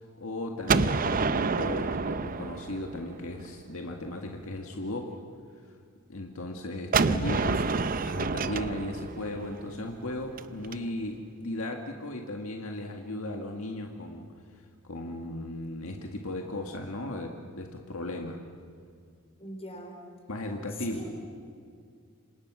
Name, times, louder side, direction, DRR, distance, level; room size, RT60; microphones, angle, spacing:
voice 1, 0.0-5.2 6.1-7.6 8.0-14.3 14.8-18.4 20.3-21.0, left 1 dB, 70° left, 2 dB, 1.9 m, -36 dB
Gunshot gunfire, 0.7-3.5 6.9-10.7, right 4 dB, 40° right, 0.7 m, -28 dB
voice 2, 7.1-7.8 19.4-20.1 20.8-21.1, left 1 dB, 30° left, 2 dB, 4.8 m, -40 dB
28.0 x 26.5 x 6.2 m, 2.2 s
head